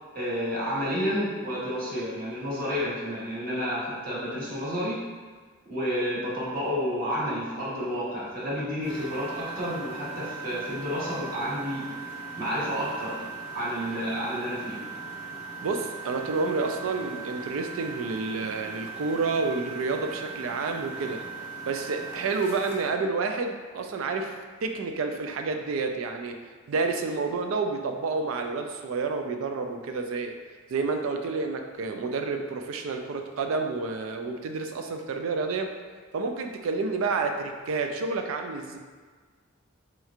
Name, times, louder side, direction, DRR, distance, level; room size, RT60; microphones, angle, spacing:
voice 1, 0.1-5.0 5.6-11.9 12.4-13.3 13.5-14.8, equal, 45° right, -7 dB, 1.1 m, -30 dB
Engine, 8.8-22.9, right 4 dB, 25° left, 0.5 m, -39 dB
voice 2, 15.6-21.2 21.7-24.3 24.6-26.4 26.7-30.3 30.7-35.7 36.1-38.8, right 4 dB, 80° right, 4 dB, 0.4 m, -29 dB
4.3 x 2.9 x 2.4 m, 1.5 s
head